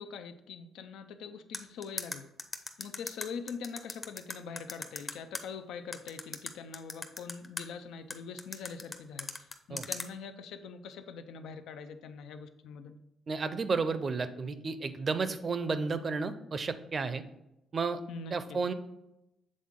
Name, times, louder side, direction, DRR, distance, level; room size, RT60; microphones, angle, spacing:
voice 1, 0.0-2.3 2.8-9.3 9.7-13.0 18.1-18.6, left 5 dB, 85° left, 9 dB, 0.5 m, -43 dB
sound 1, 1.5-5.4 5.9-7.6 8.1-10.1, left 2 dB, 25° left, 0.6 m, -38 dB
voice 2, 13.3-17.2 17.7-18.0 18.3-18.7, right 4 dB, 40° right, 11 dB, 0.5 m, -32 dB
7.6 x 3.7 x 3.6 m, 0.87 s
cardioid pair, 90°, 0 cm